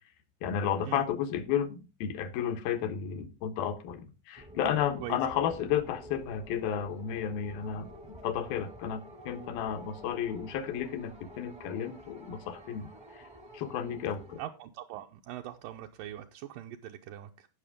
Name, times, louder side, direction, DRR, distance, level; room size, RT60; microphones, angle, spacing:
voice 1, 0.4-7.9 8.2-13.3 13.5-14.4, left 9 dB, 85° left, 8 dB, 3.0 m, -32 dB
sound 1, 4.3-14.4, equal, 25° right, 0.6 m, -50 dB
voice 2, 14.4-17.5, right 12 dB, 80° right, 3 dB, 2.2 m, -42 dB
16.5 x 5.9 x 3.6 m, 0.30 s
omnidirectional pair, 4.1 m